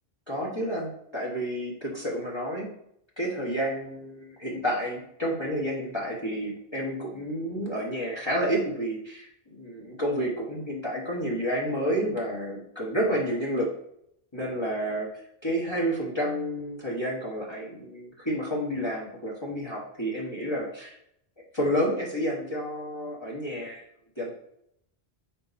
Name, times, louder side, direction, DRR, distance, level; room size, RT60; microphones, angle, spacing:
voice 1, 0.3-2.7 3.2-13.7 14.3-15.1 15.4-20.9 21.5-23.8 24.2-24.3, equal, 25° left, -4 dB, 1.3 m, -30 dB
5.7 x 4.0 x 4.1 m, 0.73 s
omnidirectional pair, 1.1 m